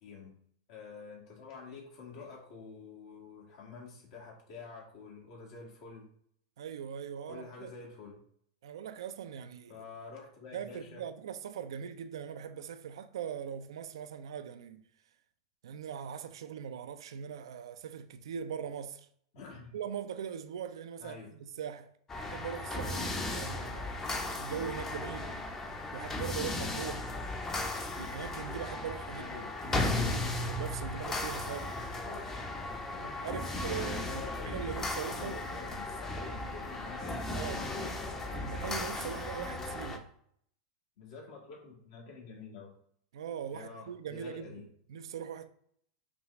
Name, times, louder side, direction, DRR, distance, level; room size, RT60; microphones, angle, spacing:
voice 1, 0.0-0.3 0.7-6.1 7.3-8.2 9.7-11.0 19.3-19.7 21.0-21.3 29.2-29.5 31.4-31.7 32.0-32.3 32.9-34.5 35.1-38.0 41.0-42.7 43.5-44.6, left 4 dB, 65° left, 1.5 m, -48 dB
voice 2, 6.6-7.7 8.6-9.9 10.5-14.8 15.6-19.1 19.7-21.9 22.2-24.0 24.4-25.4 25.9-27.2 27.9-29.3 29.7-31.6 33.2-35.3 37.3-37.6 38.3-40.1 43.1-45.5, right 8 dB, 85° right, 0.4 m, -41 dB
sound 1, 22.1-40.0, left 2 dB, 20° left, 0.6 m, -36 dB
5.9 x 2.4 x 3.0 m
hypercardioid pair, 125°, 3 cm